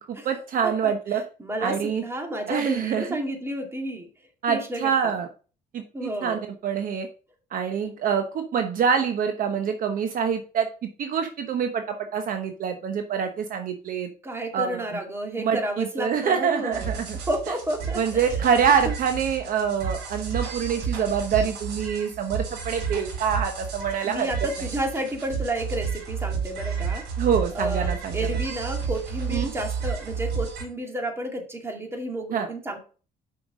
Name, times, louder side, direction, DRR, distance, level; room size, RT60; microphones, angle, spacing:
voice 1, 0.1-1.2 1.6-2.0 2.5-3.1 4.4-5.3 5.7-7.1 7.5-10.7 11.0-14.1 14.5-14.8 15.4-17.1 18.0-24.3 24.6-24.7 27.2-28.2 29.3-29.5 32.3-32.5, right 7 dB, 55° right, 6 dB, 1.0 m, -25 dB
voice 2, 0.8-4.1 4.5-5.1 5.9-6.4 14.2-16.9 17.3-18.5 24.0-27.1 27.5-32.8, right 1 dB, 15° right, 3 dB, 2.2 m, -31 dB
sound 1, 16.7-30.6, right 6 dB, 85° right, 4.6 m, -31 dB
6.1 x 6.0 x 5.1 m, 0.37 s
cardioid pair, 110°, 17 cm